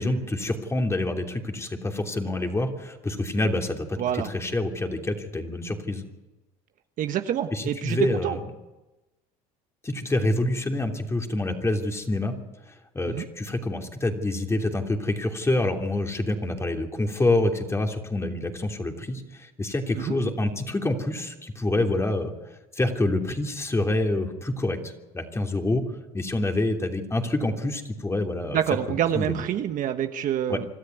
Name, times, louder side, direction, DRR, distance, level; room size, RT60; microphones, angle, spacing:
voice 1, 0.0-6.0 7.5-8.4 9.8-12.3 12.7-22.3 22.7-25.8 26.1-28.6 28.9-29.4 30.5-30.6, left 2 dB, 15° left, 3 dB, 3.1 m, -27 dB
voice 2, 4.0-4.3 7.0-8.4 13.1-13.3 19.9-20.2 28.5-30.6, right 10 dB, 50° right, 7 dB, 1.4 m, -27 dB
25.5 x 13.0 x 9.4 m, 1.1 s
supercardioid pair, 100°, 17 cm